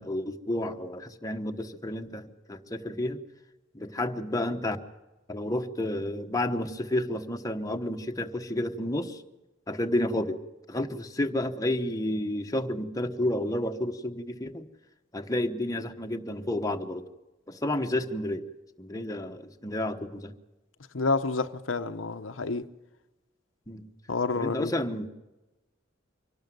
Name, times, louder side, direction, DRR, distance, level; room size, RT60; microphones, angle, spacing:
voice 1, 0.0-3.2 3.7-4.8 5.3-9.2 9.7-10.4 10.7-14.7 15.1-17.1 17.5-18.4 18.8-20.3 23.7-23.9 24.4-25.1, left 1 dB, 20° left, 1.1 m, -31 dB
voice 2, 20.9-22.7 24.1-24.7, left 3 dB, 90° left, 0.9 m, -29 dB
24.5 x 12.0 x 9.3 m
head